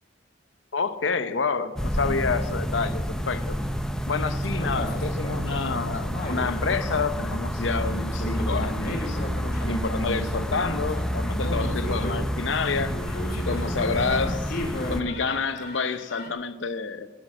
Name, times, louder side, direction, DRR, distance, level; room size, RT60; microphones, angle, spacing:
voice 1, 0.7-3.6 4.1-9.2 9.7-13.0 13.5-17.1, left 4 dB, 90° left, 0.8 m, -28 dB
sound 1, 1.8-15.0, equal, 5° left, 0.8 m, -29 dB
sound 2, 4.3-6.5 7.7-16.3, left 1 dB, 55° left, 2.3 m, -34 dB
18.0 x 6.6 x 7.4 m
head